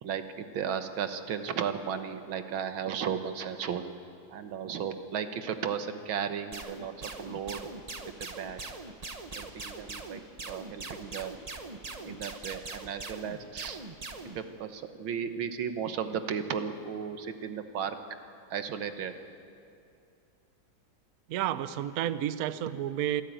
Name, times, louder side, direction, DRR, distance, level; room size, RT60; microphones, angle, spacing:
voice 1, 0.0-3.8 4.3-6.9 7.2-7.7 8.0-8.6 9.4-11.3 12.0-13.8 14.4-18.0 18.5-19.1, right 7 dB, 85° right, 9 dB, 1.9 m, -35 dB
sound 1, 6.5-14.4, right 3 dB, 25° right, 0.8 m, -41 dB
voice 2, 21.3-23.2, right 11 dB, 65° right, 14 dB, 0.9 m, -31 dB
26.5 x 12.5 x 9.1 m, 2.5 s
omnidirectional pair, 2.1 m